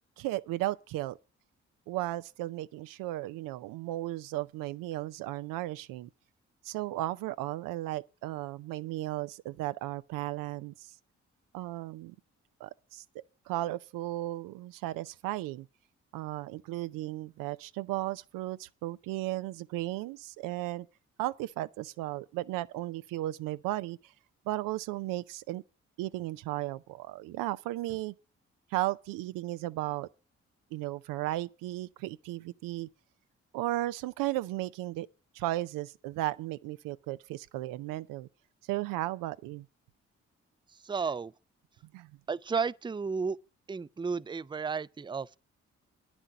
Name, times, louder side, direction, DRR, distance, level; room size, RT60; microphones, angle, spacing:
voice 1, 0.2-1.2 1.9-6.1 6.6-10.9 11.5-12.2 12.6-15.7 16.1-20.9 21.2-24.0 24.5-25.6 26.0-28.1 28.7-30.1 30.7-32.9 33.5-35.1 35.3-38.3 38.7-39.7 41.9-42.1, right 16 dB, 85° right, 0.5 m, -35 dB
voice 2, 40.8-41.3 42.3-43.4 43.7-45.4, right 5 dB, 15° right, 0.5 m, -33 dB
10.0 x 6.1 x 8.6 m
hypercardioid pair, 40°, 32 cm